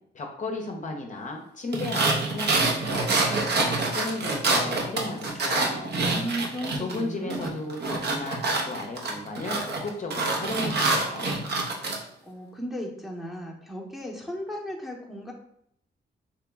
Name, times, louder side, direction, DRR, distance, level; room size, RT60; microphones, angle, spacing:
voice 1, 0.1-3.1 3.5-6.0 6.8-11.3, left 2 dB, 40° left, 2 dB, 0.6 m, -35 dB
sound 1, 1.7-7.0 7.3-12.0, right 3 dB, 60° right, 0.8 m, -26 dB
voice 2, 6.1-7.7 12.3-15.3, equal, ahead, -1 dB, 0.8 m, -35 dB
3.0 x 2.9 x 3.4 m, 0.74 s
cardioid pair, 80°, 19 cm